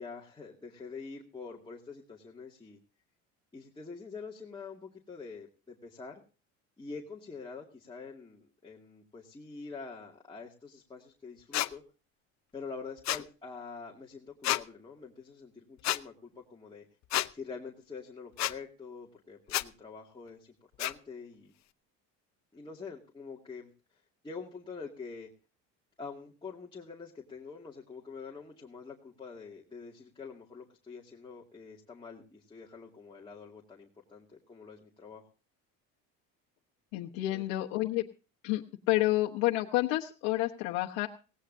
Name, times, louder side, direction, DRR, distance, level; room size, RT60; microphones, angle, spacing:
voice 1, 0.0-2.8 3.5-6.2 6.8-11.8 12.5-16.9 17.3-21.5 22.5-23.7 24.2-25.3 26.0-35.2 37.3-37.4, left 4 dB, 15° left, -3 dB, 2.2 m, -46 dB
sound 1, 11.5-11.7 13.0-13.2 14.4-14.6 15.8-16.0 17.1-17.3 18.4-18.5 19.5-19.7 20.8-20.9, left 15 dB, 50° left, 0.8 m, -29 dB
voice 2, 36.9-38.0 38.4-41.1, left 17 dB, 85° left, 0 dB, 1.2 m, -29 dB
18.5 x 17.5 x 2.7 m, 0.35 s
cardioid pair, 115°, 35 cm